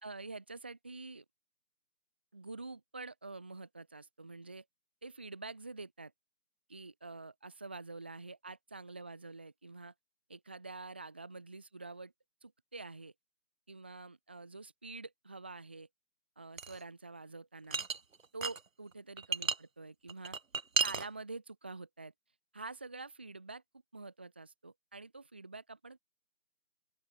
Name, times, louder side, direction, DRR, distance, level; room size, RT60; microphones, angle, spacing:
voice 1, 0.0-1.2 2.3-4.6 5.0-6.1 6.7-9.9 10.3-12.1 12.4-13.1 13.7-15.9 16.4-17.8 18.3-20.4 20.8-22.1 22.5-23.6 23.9-26.0, right 3 dB, 5° right, 2.5 m, -47 dB
sound 1, 16.6-16.8 17.7-18.6 18.9-19.6 20.1-21.1, right 5 dB, 60° right, 0.6 m, -33 dB
open air
figure-of-eight pair, 170°, 46 cm